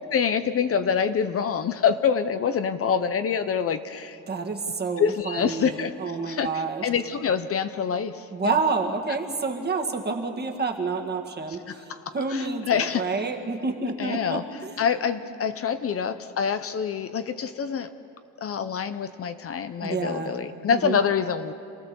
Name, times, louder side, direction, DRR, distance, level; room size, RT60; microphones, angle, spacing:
voice 1, 0.1-4.2 5.0-5.9 6.2-8.6 11.5-13.2 14.0-14.4 14.8-17.9 18.4-21.5, left 7 dB, 45° left, 10 dB, 0.8 m, -26 dB
voice 2, 4.3-6.9 8.3-11.6 12.1-14.7 19.8-20.3 20.8-21.0, right 4 dB, 30° right, 3 dB, 2.0 m, -28 dB
27.5 x 16.5 x 7.1 m, 2.7 s
cardioid pair, 120°, 32 cm